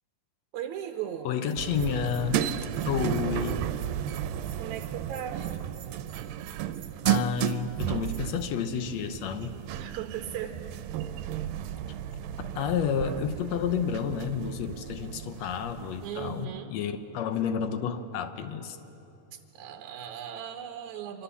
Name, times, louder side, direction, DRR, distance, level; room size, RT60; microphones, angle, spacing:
voice 1, 0.5-1.3 4.6-5.4 9.8-10.6 16.0-16.7 19.3-21.2, right 9 dB, 70° right, 5 dB, 2.0 m, -37 dB
voice 2, 1.2-2.5 2.9-3.6 7.0-9.5 12.4-18.8, left 7 dB, 70° left, 9 dB, 1.7 m, -30 dB
Bell, 1.5-8.4, right 7 dB, 50° right, 1.8 m, -52 dB
sound 1, 1.6-16.4, right 11 dB, 90° right, 2.4 m, -33 dB
25.5 x 24.5 x 7.1 m, 2.9 s
omnidirectional pair, 4.0 m